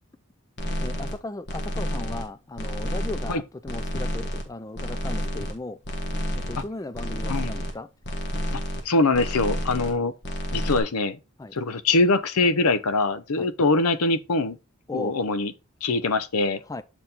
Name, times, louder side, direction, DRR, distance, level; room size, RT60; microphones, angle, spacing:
sound 1, 0.6-1.2 1.5-2.3 2.6-3.4 3.7-4.5 4.7-5.5 5.8-6.7 6.9-7.7 8.0-8.9 9.1-10.0 10.2-10.8, equal, 50° left, 1.4 m, -30 dB
voice 1, 0.8-5.8 6.3-7.9 8.5-8.6 11.4-11.6 13.4-13.5 14.9-15.2 16.6-16.8, left 2 dB, 15° left, 0.3 m, -36 dB
voice 2, 8.8-10.1 10.5-11.2 11.5-14.6 14.9-15.5 15.8-16.6, left 3 dB, 85° left, 0.7 m, -23 dB
7.1 x 4.5 x 3.9 m
head